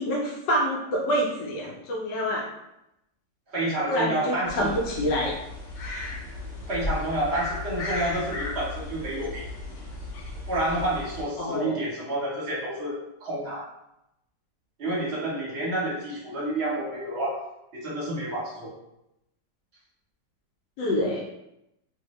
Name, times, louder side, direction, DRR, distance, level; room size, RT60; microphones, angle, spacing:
voice 1, 0.0-2.5 3.9-5.3 11.4-11.8 20.8-21.2, equal, 75° left, -2 dB, 1.2 m, -26 dB
voice 2, 3.5-4.7 6.7-9.5 10.5-13.7 14.8-17.4 17.7-18.7, right 1 dB, 45° right, -6 dB, 1.0 m, -29 dB
sound 1, 4.5-11.2, left 2 dB, 55° left, 0.9 m, -35 dB
2.7 x 2.6 x 3.1 m, 0.86 s
omnidirectional pair, 2.0 m